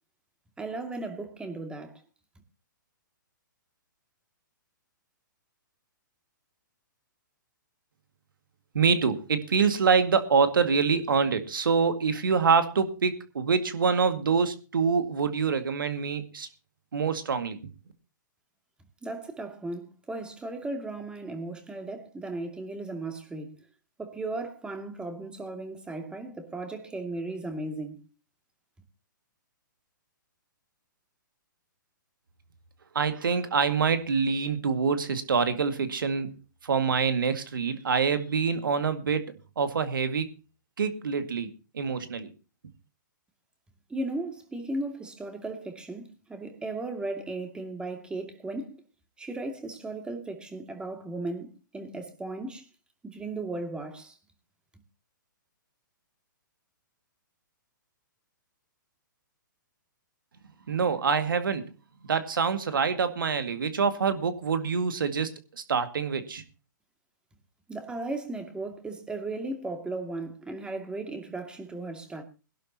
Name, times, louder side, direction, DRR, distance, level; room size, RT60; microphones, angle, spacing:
voice 1, 0.6-2.0 19.0-23.6 24.0-28.0 43.9-48.8 49.2-52.7 53.0-54.2 67.7-72.2, right 2 dB, 10° right, 2.4 m, -36 dB
voice 2, 8.7-16.5 16.9-17.6 32.9-36.4 36.6-39.3 39.6-40.3 40.8-41.5 41.7-42.3 60.7-61.7 62.0-66.4, right 5 dB, 80° right, 2.1 m, -26 dB
22.0 x 11.5 x 2.9 m
hypercardioid pair, 130°, 11 cm